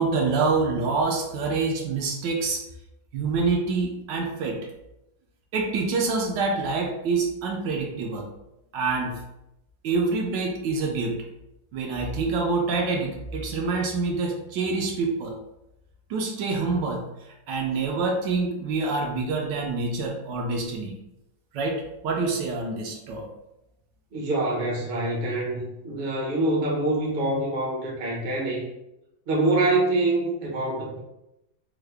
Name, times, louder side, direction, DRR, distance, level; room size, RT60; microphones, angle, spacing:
voice 1, 0.0-2.6 3.1-4.6 5.5-8.3 8.7-9.2 9.8-11.2 11.7-15.4 16.1-17.0 17.5-21.0 21.5-23.3, right 4 dB, 75° right, 0 dB, 1.1 m, -26 dB
voice 2, 24.1-28.6 29.3-31.0, right 2 dB, 50° right, -3 dB, 0.6 m, -25 dB
3.6 x 2.1 x 3.2 m, 0.89 s
omnidirectional pair, 2.1 m